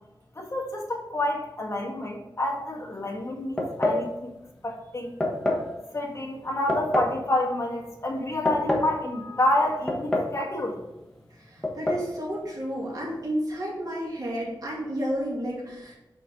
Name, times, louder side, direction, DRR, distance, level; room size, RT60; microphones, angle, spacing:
voice 1, 0.3-4.3 4.6-5.1 5.9-10.8, left 1 dB, 35° left, -1 dB, 1.5 m, -28 dB
sound 1, 3.6-4.1 5.2-5.7 6.7-7.2 8.2-8.9 9.9-10.4 10.7-10.8 11.6-12.1, left 1 dB, 5° left, 1.3 m, -26 dB
voice 2, 11.3-15.9, equal, 50° right, -4 dB, 2.1 m, -31 dB
6.0 x 4.3 x 5.2 m, 0.94 s
wide cardioid pair, 95°, 8 cm